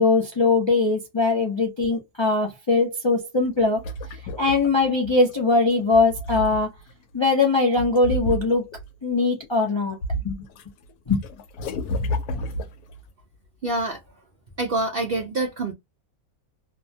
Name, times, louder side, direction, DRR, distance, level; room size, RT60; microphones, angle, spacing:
voice 1, 0.0-3.8 4.4-6.7 7.1-8.7 9.0-10.0 10.2-10.5 11.1-11.2, left 3 dB, 40° left, 0.4 m, -21 dB
sound 1, 3.5-5.3 5.8-6.9 7.8-8.9 9.4-10.6 10.9-13.0, equal, 90° left, 1.1 m, -31 dB
voice 2, 13.6-14.0 14.6-15.7, right 2 dB, 65° right, 0.6 m, -26 dB
2.7 x 2.0 x 2.6 m
omnidirectional pair, 1.6 m